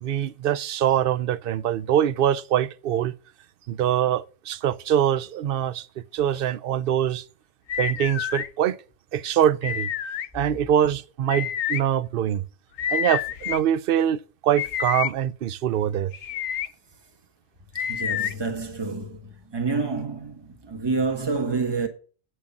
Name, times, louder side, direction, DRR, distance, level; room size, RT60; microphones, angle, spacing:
voice 1, 0.0-3.1 3.7-5.9 6.1-7.2 7.8-8.8 9.1-9.9 10.3-12.4 12.9-16.1, right 10 dB, 55° right, 0.7 m, -24 dB
sound 1, 7.7-8.5 9.6-10.3 11.3-11.8 12.8-13.6 14.6-15.1 16.1-16.7 17.8-18.3, left 9 dB, 85° left, 1.1 m, -28 dB
voice 2, 17.7-21.9, right 4 dB, 20° right, 1.6 m, -28 dB
9.1 x 6.4 x 7.1 m
omnidirectional pair, 1.3 m